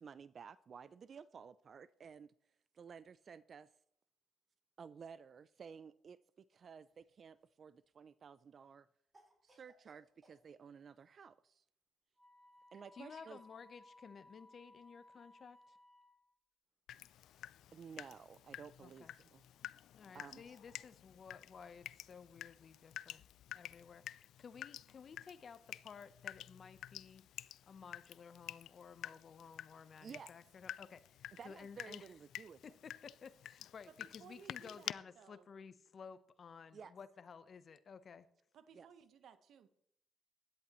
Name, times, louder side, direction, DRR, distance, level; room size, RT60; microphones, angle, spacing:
voice 1, 0.0-2.3 2.7-3.7 4.8-8.9 9.4-11.6 12.7-13.4 17.7-19.4 20.1-20.6 30.0-30.3 31.4-32.6 36.7-36.9 38.8-38.9, right 6 dB, 50° right, 0.4 m, -54 dB
Cough, 6.8-7.6 9.1-10.4, right 1 dB, 25° right, 4.5 m, -69 dB
Wind instrument woodwind instrument, 12.2-16.3, left 1 dB, 10° right, 6.0 m, -62 dB
voice 2, 12.9-15.8 18.8-19.1 19.9-23.2 23.5-27.3 27.7-32.1 32.6-38.3, left 6 dB, 50° left, 0.8 m, -55 dB
Water tap faucet / Drip, 16.9-34.9, left 12 dB, 80° left, 0.3 m, -51 dB
voice 3, 33.9-35.5 38.5-39.7, right 7 dB, 70° right, 1.0 m, -60 dB
16.0 x 11.0 x 3.0 m
cardioid pair, 90°, 0 cm